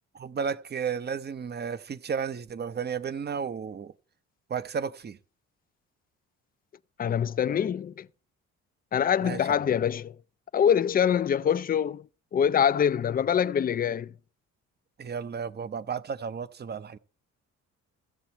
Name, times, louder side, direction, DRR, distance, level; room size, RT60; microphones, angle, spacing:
voice 1, 0.1-3.9 4.5-5.2 9.2-9.4 9.7-9.8 15.0-17.0, right 6 dB, 35° right, 0.7 m, -33 dB
voice 2, 7.0-8.1 8.9-10.2 10.5-12.0 12.3-14.1, left 8 dB, 30° left, 0.4 m, -24 dB
16.5 x 6.9 x 4.3 m
cardioid pair, 90°, 30 cm